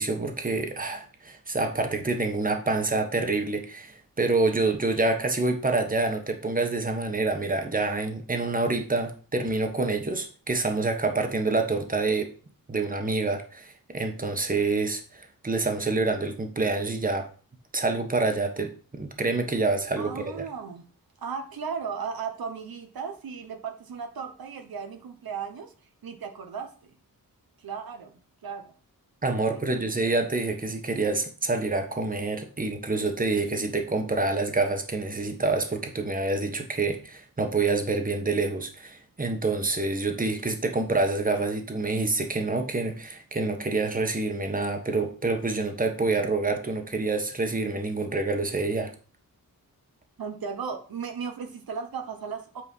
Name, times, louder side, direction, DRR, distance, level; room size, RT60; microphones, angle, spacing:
voice 1, 0.0-12.3 12.7-17.3 17.7-20.5 29.2-48.9, right 3 dB, 25° right, 1.4 m, -27 dB
voice 2, 20.0-20.8 21.2-25.7 26.0-26.7 27.6-28.7 29.3-29.7 50.2-52.6, right 6 dB, 90° right, 1.2 m, -36 dB
8.7 x 4.6 x 5.5 m
wide cardioid pair, 120°, 35 cm